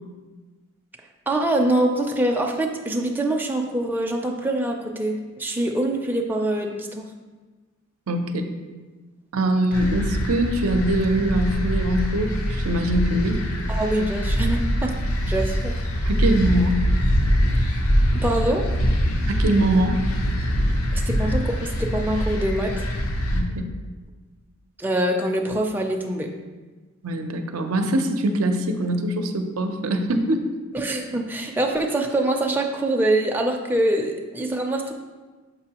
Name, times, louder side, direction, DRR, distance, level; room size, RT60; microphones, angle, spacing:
voice 1, 1.3-7.0 13.7-14.9 15.3-15.8 18.1-18.6 20.9-22.7 24.8-26.3 30.7-34.9, right 1 dB, 10° right, 1 dB, 0.4 m, -24 dB
voice 2, 8.1-8.5 9.3-13.4 16.0-16.8 19.3-20.0 23.3-23.7 27.0-30.5, right 1 dB, 80° right, 6 dB, 0.6 m, -23 dB
sound 1, 9.7-23.4, equal, 90° left, 0.7 m, -23 dB
6.8 x 5.3 x 2.9 m, 1.3 s
head